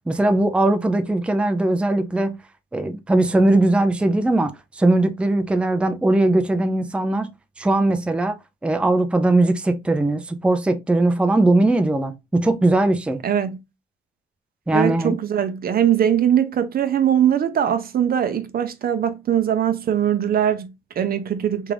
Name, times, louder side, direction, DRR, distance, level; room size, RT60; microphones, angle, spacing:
voice 1, 0.1-2.4 2.7-7.3 7.6-8.4 8.6-13.2 14.7-15.2, right 2 dB, 5° right, 0.4 m, -19 dB
voice 2, 13.2-13.6 14.7-21.7, right 9 dB, 50° right, 0.5 m, -21 dB
3.5 x 2.4 x 3.3 m
cardioid pair, 90°, 20 cm